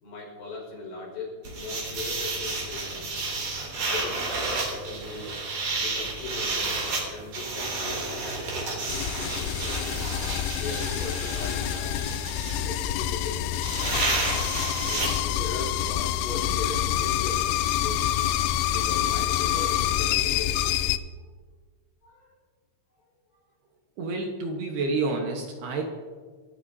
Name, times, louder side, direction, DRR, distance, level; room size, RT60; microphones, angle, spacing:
voice 1, 0.0-3.2 3.9-5.3 5.8-6.8 7.1-10.0 10.6-12.2 12.6-13.5 14.9-18.1 18.7-20.7 22.0-22.3, left 3 dB, 65° left, -3 dB, 7.8 m, -38 dB
sound 1, 1.4-15.2, right 3 dB, 45° right, 4.3 m, -31 dB
sound 2, 8.9-21.0, left 12 dB, 80° left, 2.8 m, -27 dB
voice 2, 24.0-25.9, right 3 dB, 65° right, 2 dB, 2.9 m, -29 dB
26.5 x 14.0 x 2.8 m, 1.5 s
omnidirectional pair, 5.5 m